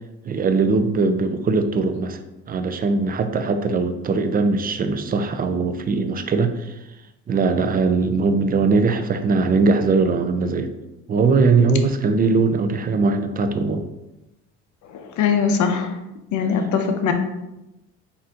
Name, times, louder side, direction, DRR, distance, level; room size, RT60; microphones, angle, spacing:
voice 1, 0.2-2.2 2.5-6.7 7.3-10.7 11.1-13.8, right 4 dB, 25° right, 8 dB, 0.4 m, -20 dB
voice 2, 14.9-15.9 16.3-17.1, left 6 dB, 55° left, 6 dB, 0.7 m, -21 dB
4.1 x 2.7 x 3.7 m, 0.95 s
supercardioid pair, 80°, 37 cm